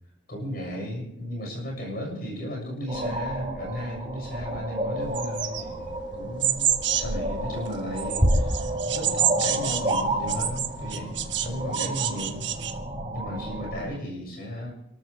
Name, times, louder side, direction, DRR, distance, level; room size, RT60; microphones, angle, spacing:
voice 1, 0.3-11.1 11.4-12.4 13.1-14.7, equal, 50° left, -1 dB, 6.7 m, -35 dB
sound 1, 2.9-13.8, right 1 dB, 25° right, 5.0 m, -30 dB
sound 2, 5.1-7.2 7.7-11.5 11.7-12.7, right 10 dB, 65° right, 1.3 m, -28 dB
28.0 x 14.0 x 3.4 m, 0.74 s
head